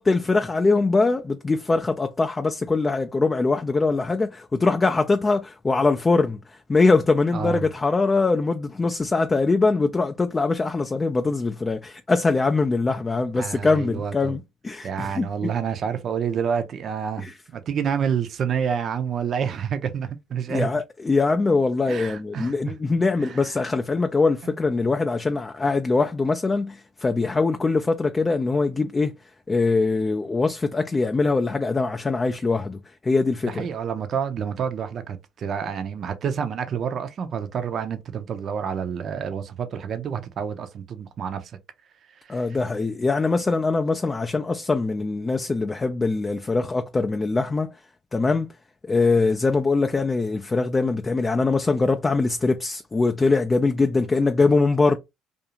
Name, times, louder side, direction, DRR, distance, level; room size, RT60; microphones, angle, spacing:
voice 1, 0.0-6.4 6.7-15.5 17.2-17.3 20.5-29.1 29.5-33.7 42.3-47.7 48.1-48.5 48.8-55.0, left 3 dB, 25° left, 0.3 m, -22 dB
voice 2, 7.3-7.7 13.4-14.4 14.8-20.8 21.9-22.6 23.2-23.5 24.4-24.5 33.5-41.5 42.2-42.5, right 7 dB, 50° right, 0.5 m, -28 dB
2.5 x 2.3 x 2.8 m
supercardioid pair, 70°, 0 cm